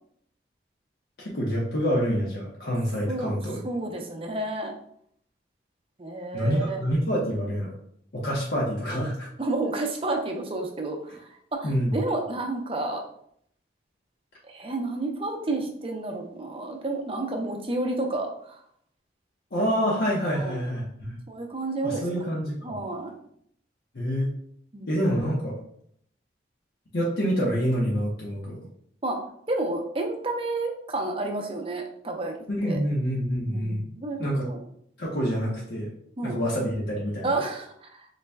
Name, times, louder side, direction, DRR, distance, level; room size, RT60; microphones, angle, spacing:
voice 1, 1.2-3.6 6.3-7.7 8.1-9.3 11.6-12.0 19.5-21.1 21.8-22.7 23.9-24.3 24.9-25.5 26.9-28.6 32.5-33.8 34.2-34.5 35.0-35.9 36.2-37.3, equal, 65° left, -4 dB, 0.7 m, -27 dB
voice 2, 3.6-4.7 6.0-6.8 9.4-13.0 14.4-18.6 20.3-20.6 21.3-22.1 22.6-23.1 24.7-25.0 29.0-29.2 29.5-32.3 32.6-32.8 33.5-34.6 36.2-36.4 37.2-38.1, right 2 dB, 30° right, 2 dB, 0.5 m, -30 dB
3.9 x 2.2 x 3.3 m, 0.68 s
head